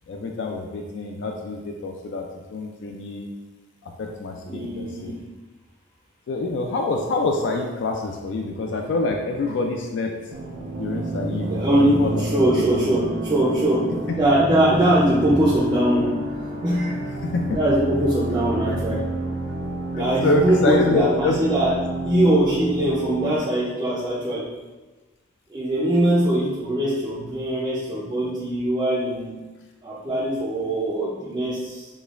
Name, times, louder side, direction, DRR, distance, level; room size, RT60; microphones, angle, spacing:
voice 1, 0.1-3.3 3.8-5.2 6.3-10.1 10.8-12.2 14.1-14.2 17.2-17.5 19.9-21.4, left 3 dB, 65° left, 2 dB, 0.3 m, -26 dB
voice 2, 4.5-5.2 11.5-16.2 16.6-17.0 17.5-19.2 19.9-21.7 22.0-24.5 25.5-29.4 29.8-31.9, right 1 dB, 25° right, -7 dB, 0.4 m, -22 dB
sound 1, 10.3-23.4, right 2 dB, 80° right, 0.5 m, -30 dB
5.0 x 2.2 x 2.4 m, 1.2 s
head